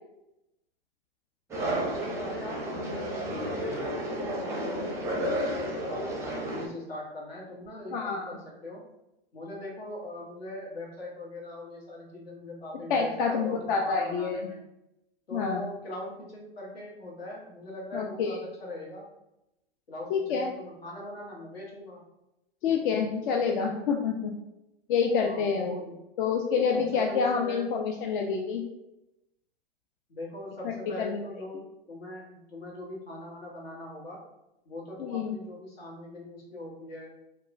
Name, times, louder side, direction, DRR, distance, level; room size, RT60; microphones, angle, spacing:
sound 1, 1.5-6.7, right 1 dB, 10° right, 0.5 m, -32 dB
voice 1, 1.6-8.8 9.3-14.6 15.3-19.1 19.9-22.0 25.2-26.0 26.7-27.6 30.1-34.2 34.6-37.1, left 1 dB, 80° left, -3 dB, 1.2 m, -41 dB
voice 2, 7.9-8.4 12.9-14.4 15.3-15.6 17.9-18.4 20.1-20.5 22.6-24.3 24.9-25.8 26.2-28.6 31.0-31.2 35.0-35.4, left 5 dB, 60° left, 2 dB, 0.4 m, -27 dB
2.9 x 2.2 x 2.5 m, 0.91 s
hypercardioid pair, 105°, 30 cm